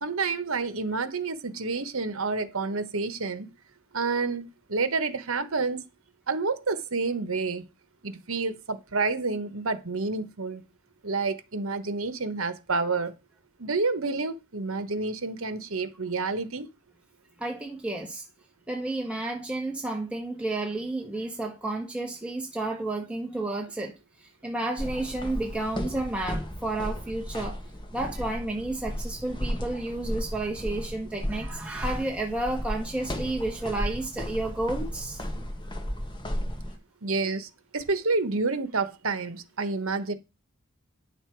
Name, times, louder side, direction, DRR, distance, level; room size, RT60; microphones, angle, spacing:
voice 1, 0.0-3.5 3.9-5.8 6.3-7.6 8.0-10.6 11.0-13.1 13.6-16.7 37.0-40.1, right 3 dB, 70° right, 1.2 m, -29 dB
voice 2, 17.4-18.2 18.7-24.0 24.4-27.6 27.9-35.2, right 2 dB, 5° right, 1.6 m, -31 dB
sound 1, 24.8-36.8, equal, 20° left, 1.4 m, -34 dB
9.9 x 6.6 x 4.6 m
head